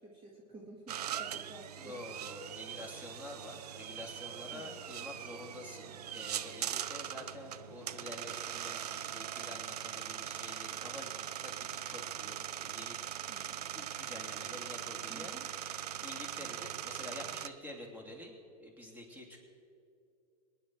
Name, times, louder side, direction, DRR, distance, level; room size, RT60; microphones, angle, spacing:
voice 1, 0.0-2.0 4.5-4.9 13.3-13.6 15.1-15.5, right 2 dB, 25° right, -2 dB, 2.3 m, -52 dB
sound 1, 0.9-17.5, right 10 dB, 85° right, 0.6 m, -41 dB
voice 2, 1.8-13.0 13.5-15.4 16.0-18.3 18.6-19.4, left 1 dB, 10° right, 0 dB, 3.1 m, -48 dB
23.5 x 10.5 x 4.8 m, 2.6 s
hypercardioid pair, 105°, 20 cm